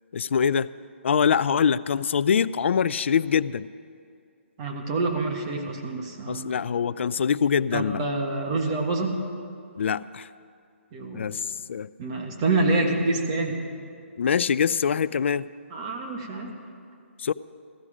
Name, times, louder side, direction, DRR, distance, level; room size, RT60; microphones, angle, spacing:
voice 1, 0.1-0.7 1.0-3.7 6.3-8.0 9.8-10.3 11.1-11.9 14.2-15.5 17.2-17.3, left 7 dB, 60° left, 17 dB, 0.4 m, -24 dB
voice 2, 4.6-6.5 7.7-9.2 10.9-11.3 12.0-13.6 15.7-16.5, right 2 dB, 25° right, 2 dB, 1.4 m, -27 dB
15.5 x 13.5 x 5.0 m, 2.3 s
hypercardioid pair, 160°, 7 cm